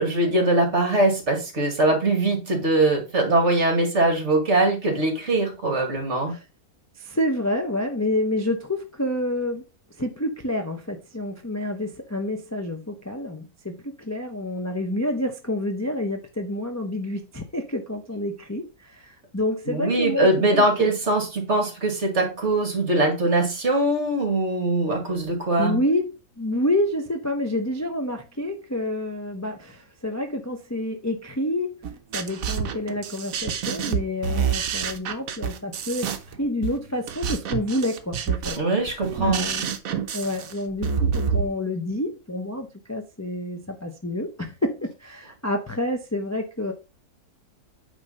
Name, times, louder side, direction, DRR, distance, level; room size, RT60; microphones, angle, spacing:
voice 1, 0.0-6.3 19.7-25.8 38.6-39.5, right 2 dB, 45° right, 2.5 m, -22 dB
voice 2, 7.0-9.6 10.0-20.9 25.6-31.8 32.1-39.7 40.1-46.7, left 1 dB, 15° left, 0.5 m, -28 dB
sound 1, 31.8-41.4, right 7 dB, 60° right, 1.2 m, -28 dB
8.9 x 3.4 x 5.6 m
omnidirectional pair, 1.7 m